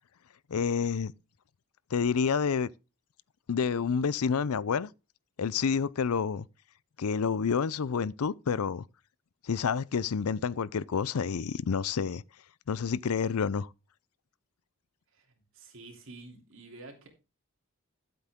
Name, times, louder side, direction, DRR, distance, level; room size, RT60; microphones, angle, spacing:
voice 1, 0.5-1.1 1.9-2.7 3.5-4.9 5.4-6.5 7.0-8.8 9.4-12.2 12.7-13.7, left 6 dB, 85° left, 0.5 m, -29 dB
voice 2, 15.5-17.1, right 2 dB, 60° right, 3.1 m, -49 dB
13.5 x 8.0 x 3.7 m
head